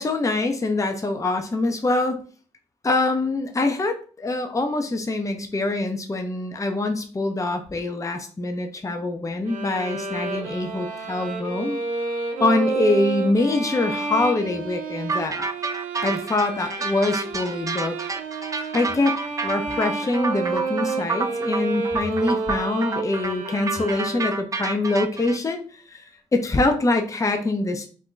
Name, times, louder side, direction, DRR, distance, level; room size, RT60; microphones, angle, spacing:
voice 1, 0.0-2.2 2.8-11.8 12.4-15.4 16.0-18.0 18.7-19.2 19.4-26.0 26.3-27.9, left 2 dB, 25° left, 5 dB, 0.6 m, -24 dB
sound 1, 9.5-24.6, right 4 dB, 80° right, 0.5 m, -30 dB
sound 2, 15.1-25.4, right 4 dB, 25° right, 0.4 m, -29 dB
2.5 x 2.1 x 3.8 m, 0.40 s
supercardioid pair, 45°, 13 cm